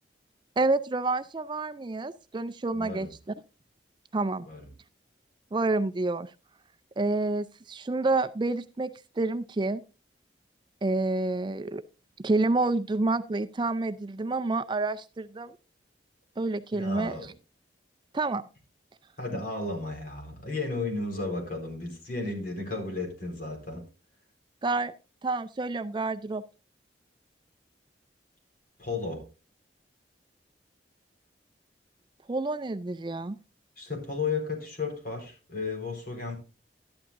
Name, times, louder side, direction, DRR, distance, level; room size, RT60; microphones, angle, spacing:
voice 1, 0.6-3.1 4.1-4.5 5.5-6.3 7.0-8.9 9.2-9.8 10.8-11.8 12.2-15.5 16.4-17.1 18.1-18.4 24.6-24.9 25.2-26.4 32.3-33.4, right 2 dB, 25° right, 12 dB, 0.4 m, -28 dB
voice 2, 2.7-3.1 4.4-4.7 16.7-17.3 19.2-23.8 28.8-29.2 33.8-36.4, left 3 dB, 50° left, 2 dB, 4.2 m, -33 dB
12.0 x 11.5 x 2.5 m, 0.32 s
head